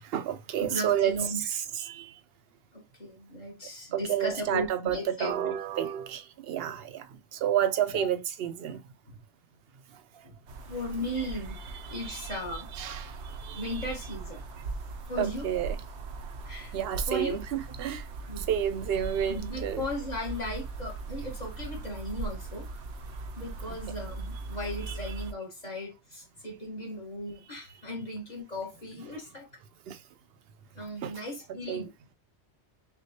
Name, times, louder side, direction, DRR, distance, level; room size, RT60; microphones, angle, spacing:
voice 1, 0.0-2.1 3.9-8.8 11.9-13.7 15.2-15.8 16.7-18.1 18.4-19.8 23.7-23.8 24.9-25.0 29.9-30.0 31.0-31.2 31.7-31.9, right 10 dB, 70° right, 0.7 m, -31 dB
voice 2, 0.6-1.5 2.7-5.5 7.9-8.1 9.1-9.2 10.2-10.3 10.7-11.6 11.9-12.7 13.5-14.4 15.1-15.6 16.4-16.7 17.1-17.4 18.3-18.5 19.3-22.7 23.4-29.5 30.7-31.9, left 1 dB, 40° left, 1.4 m, -36 dB
sound 1, 10.5-25.3, right 3 dB, 90° right, 1.0 m, -39 dB
5.8 x 2.3 x 2.9 m
omnidirectional pair, 1.1 m